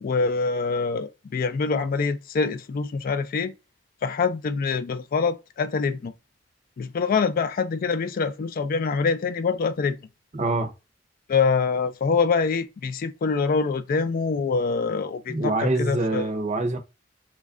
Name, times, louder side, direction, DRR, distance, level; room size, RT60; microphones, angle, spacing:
voice 1, 0.0-3.5 4.0-6.1 6.8-10.0 11.3-16.3, left 5 dB, 50° left, 0.3 m, -25 dB
voice 2, 10.3-10.7 15.3-16.8, right 2 dB, 40° right, 0.6 m, -25 dB
3.1 x 2.3 x 3.5 m
head